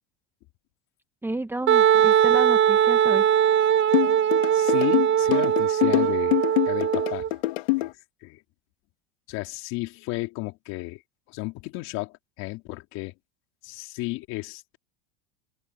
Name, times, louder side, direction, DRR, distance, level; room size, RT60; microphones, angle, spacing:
voice 1, 1.2-3.3, right 2 dB, 5° right, 1.5 m, -32 dB
Wind instrument woodwind instrument, 1.7-7.3, right 9 dB, 35° right, 1.7 m, -20 dB
sound 1, 3.9-7.9, left 21 dB, 80° left, 3.4 m, -24 dB
voice 2, 4.5-7.3 7.8-7.9 8.2-8.4 9.3-11.0 11.3-13.1 13.6-14.8, left 22 dB, 60° left, 3.4 m, -33 dB
open air
supercardioid pair, 130°, 31 cm